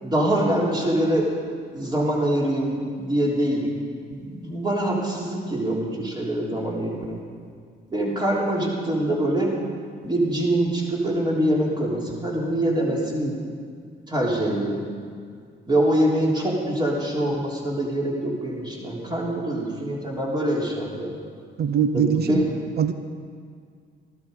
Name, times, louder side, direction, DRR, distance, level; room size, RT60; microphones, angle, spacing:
voice 1, 0.0-1.3 1.7-3.7 4.1-7.2 7.9-9.5 10.0-13.4 14.1-14.8 15.7-21.2 21.9-22.4, right 1 dB, 20° right, -4 dB, 3.7 m, -24 dB
voice 2, 21.6-22.4 22.8-22.9, right 7 dB, 55° right, 9 dB, 0.8 m, -22 dB
14.5 x 12.0 x 5.3 m, 2.1 s
cardioid pair, 90°, 20 cm